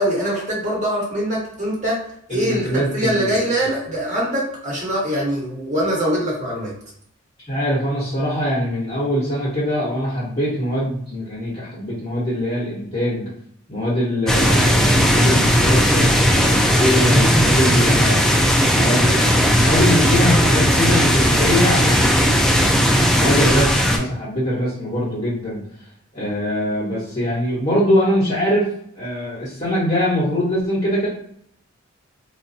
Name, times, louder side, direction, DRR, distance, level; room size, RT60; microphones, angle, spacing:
voice 1, 0.0-2.0 2.3-6.7, equal, 40° right, -5 dB, 1.3 m, -23 dB
voice 2, 2.3-3.4 7.4-13.3 13.7-18.3 18.7-22.8 23.1-25.6 26.1-28.7 28.9-31.1, equal, 30° left, -9 dB, 1.1 m, -22 dB
sound 1, 14.3-24.0, equal, 5° left, 0.3 m, -16 dB
2.5 x 2.2 x 4.0 m, 0.67 s
head